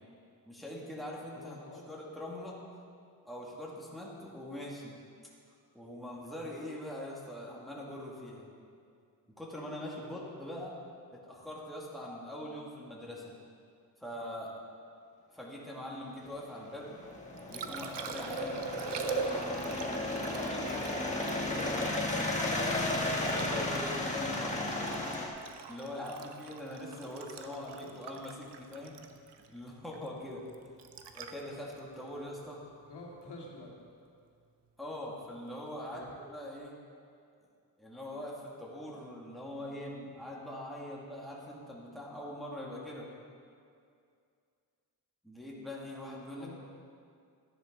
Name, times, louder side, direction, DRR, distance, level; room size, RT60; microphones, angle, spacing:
voice 1, 0.5-1.6 1.9-2.6 3.2-5.0 5.7-8.5 9.4-10.8 11.1-13.4 14.0-14.5 15.3-16.9 17.5-19.7 20.3-22.8 23.3-24.8 25.7-28.9 29.5-30.4 31.1-32.6 34.8-36.7 37.8-43.1 45.2-46.5, left 1 dB, ahead, -5 dB, 2.5 m, -43 dB
voice 2, 1.3-1.9 27.6-27.9 32.9-33.7 35.9-36.2 46.4-46.5, left 2 dB, 75° left, -3 dB, 2.4 m, -48 dB
sound 1, 16.2-25.3, left 2 dB, 15° left, 1.7 m, -34 dB
Liquid, 17.1-33.2 36.0-36.1, right 5 dB, 85° right, 0.8 m, -43 dB
13.5 x 10.0 x 4.0 m, 2.3 s
cardioid pair, 80°, 41 cm